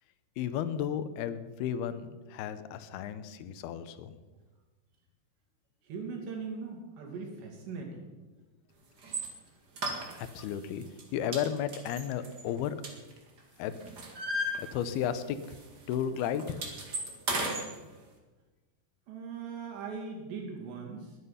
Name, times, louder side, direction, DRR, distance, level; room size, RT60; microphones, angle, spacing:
voice 1, 0.4-4.1 10.2-10.8 11.1-12.8 13.6-13.7 14.6-15.6 15.9-16.6, left 9 dB, 75° left, 12 dB, 2.6 m, -33 dB
voice 2, 5.8-8.1 19.1-21.2, right 5 dB, 85° right, 1 dB, 4.7 m, -40 dB
sound 1, 9.0-9.3 9.8-10.5 10.8-11.0 11.3-13.4 13.7-15.2 15.4-15.6 15.9-17.7, right 1 dB, 35° right, 1.7 m, -35 dB
20.5 x 9.6 x 5.6 m, 1.2 s
omnidirectional pair, 4.8 m